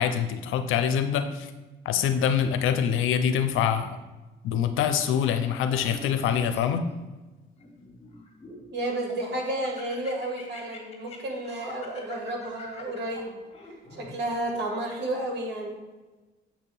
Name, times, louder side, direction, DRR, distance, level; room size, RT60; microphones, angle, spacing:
voice 1, 0.0-1.5 1.9-3.9 4.4-6.8, left 8 dB, 85° left, 9 dB, 0.5 m, -25 dB
Laughter, 5.7-7.0 7.6-8.7 9.1-14.1, left 3 dB, 35° left, 1.5 m, -45 dB
voice 2, 8.7-13.4 13.9-15.8, right 1 dB, 60° right, 0 dB, 1.9 m, -31 dB
7.2 x 2.8 x 5.5 m, 1.2 s
cardioid pair, 90°, 20 cm